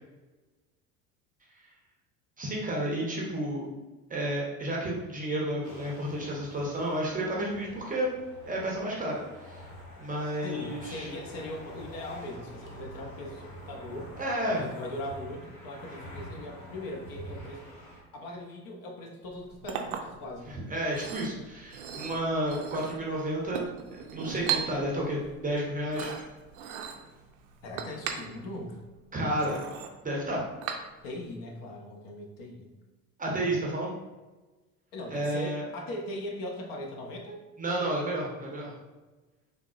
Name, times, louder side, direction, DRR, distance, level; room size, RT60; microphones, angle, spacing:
voice 1, 2.4-3.7 4.1-8.1 8.4-9.6 10.0-11.1 14.2-14.6 20.5-23.6 23.9-26.1 29.1-29.6 30.0-30.4 33.2-33.9 35.1-35.6 37.6-38.7, right 1 dB, 20° right, -3 dB, 0.6 m, -31 dB
sound 1, 5.6-18.0, equal, 80° left, 1.2 m, -46 dB
voice 2, 10.4-14.1 14.5-17.7 18.1-20.5 27.6-28.8 31.0-32.7 34.9-37.4, left 1 dB, 45° left, 1 dB, 0.6 m, -40 dB
Chink clink, 19.2-31.3, right 7 dB, 65° right, 0.5 m, -39 dB
3.4 x 2.1 x 2.4 m, 1.2 s
hypercardioid pair, 70°, 47 cm